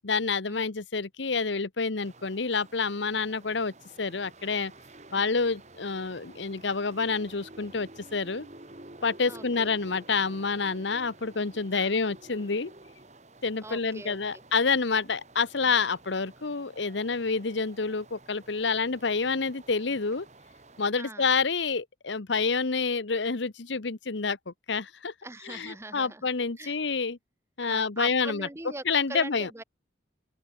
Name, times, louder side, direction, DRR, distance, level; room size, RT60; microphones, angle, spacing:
voice 1, 0.0-4.7 5.1-8.5 9.0-12.7 13.4-20.3 20.8-25.1 25.5-27.2 27.6-28.5 28.8-29.5, left 4 dB, 70° left, 1.0 m, -28 dB
sound 1, 2.0-20.9, right 2 dB, 35° right, 2.7 m, -51 dB
voice 2, 9.3-9.8 11.7-12.0 13.6-14.4 15.6-15.8 21.0-21.3 25.2-26.2 26.6-26.8 27.6-28.8 29.1-29.6, right 2 dB, 15° right, 0.9 m, -42 dB
open air
head